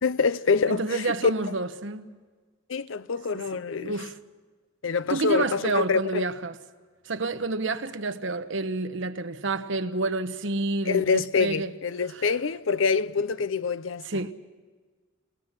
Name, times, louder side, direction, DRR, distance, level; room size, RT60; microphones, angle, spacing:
voice 1, 0.0-1.3 2.7-4.0 4.8-6.2 10.9-14.3, left 5 dB, 75° left, 0.6 m, -26 dB
voice 2, 0.7-2.1 3.3-3.4 3.8-4.2 5.1-6.6 7.0-11.7 12.1-12.2 14.0-14.3, right 3 dB, 70° right, 1.2 m, -29 dB
29.0 x 19.0 x 5.9 m
head